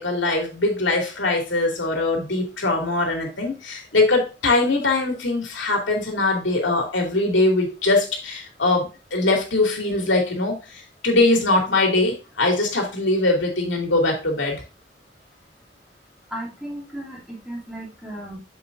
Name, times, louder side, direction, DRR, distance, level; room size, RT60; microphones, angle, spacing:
voice 1, 0.0-10.6 11.0-14.6, left 2 dB, 80° left, 1 dB, 2.6 m, -22 dB
voice 2, 16.3-18.4, right 1 dB, ahead, -4 dB, 2.9 m, -35 dB
7.8 x 7.2 x 2.5 m, 0.28 s
head